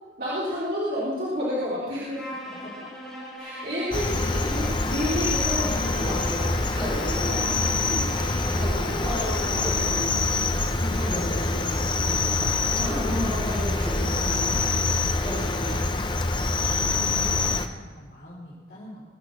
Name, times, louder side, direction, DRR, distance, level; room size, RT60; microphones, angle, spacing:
voice 1, 0.2-2.2 3.4-6.3 10.7-11.2 12.8-13.8, left 1 dB, 55° right, -9 dB, 3.7 m, -30 dB
voice 2, 1.9-2.9 3.6-3.7 6.0-6.8 7.1-13.4 13.9-15.9 16.1-19.0, left 1 dB, 55° left, -8 dB, 4.7 m, -45 dB
Bowed string instrument, 2.1-10.0, equal, 5° left, 5.5 m, -40 dB
Cricket, 3.9-17.7, left 3 dB, 25° left, 0.8 m, -25 dB
sound 1, 6.0-15.8, equal, 25° right, 4.0 m, -34 dB
22.5 x 8.8 x 6.1 m, 1.3 s
head